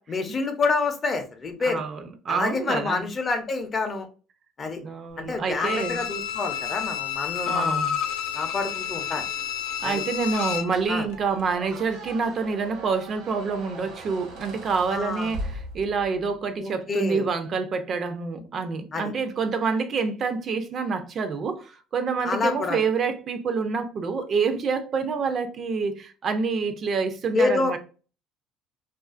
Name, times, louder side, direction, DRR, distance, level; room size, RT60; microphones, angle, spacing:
voice 1, 0.0-1.8 2.3-4.1 4.6-4.8 5.2-7.8 8.3-9.2 9.8-10.0 10.9-11.1 14.9-15.3 16.6-17.2 18.9-19.1 22.2-22.8 27.3-27.8, left 3 dB, 35° left, 0.5 m, -27 dB
voice 2, 1.6-3.1 4.8-6.0 7.5-8.0 9.8-27.8, right 5 dB, 45° right, 0.4 m, -27 dB
Bowed string instrument, 5.6-10.8 11.1-11.2, left 9 dB, 90° left, 0.4 m, -30 dB
Squeak, 10.7-16.2, right 1 dB, 85° right, 1.0 m, -39 dB
2.4 x 2.4 x 2.4 m
cardioid pair, 105°, 0 cm